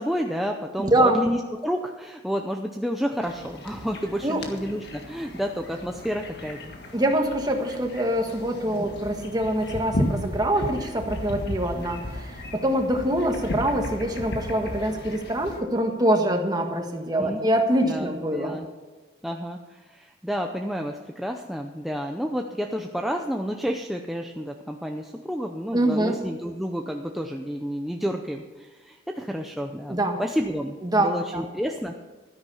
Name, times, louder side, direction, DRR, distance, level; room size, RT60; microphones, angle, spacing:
voice 1, 0.0-6.7 17.2-17.4 17.8-18.7 19.2-31.9, equal, ahead, 2 dB, 0.6 m, -30 dB
voice 2, 0.8-1.2 4.2-4.4 6.9-18.6 25.7-26.2 29.9-30.2 30.8-31.4, right 1 dB, 20° right, 4 dB, 1.5 m, -24 dB
sound 1, 3.2-15.6, left 1 dB, 55° left, 1.7 m, -35 dB
13.0 x 10.5 x 5.6 m, 1.3 s
head